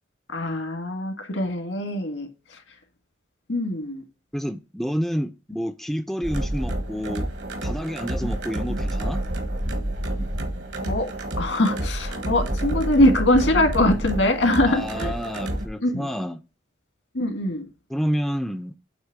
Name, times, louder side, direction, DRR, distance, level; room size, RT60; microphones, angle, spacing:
voice 1, 0.3-2.6 3.5-4.0 10.8-11.1 11.4-15.1 15.8-16.1 17.1-17.6, left 1 dB, 85° left, 1.7 m, -22 dB
voice 2, 4.3-7.3 7.6-9.2 14.6-16.4 17.9-18.8, equal, ahead, 0.3 m, -29 dB
sound 1, 6.2-15.7, right 1 dB, 70° right, 1.4 m, -29 dB
8.0 x 3.1 x 5.8 m
head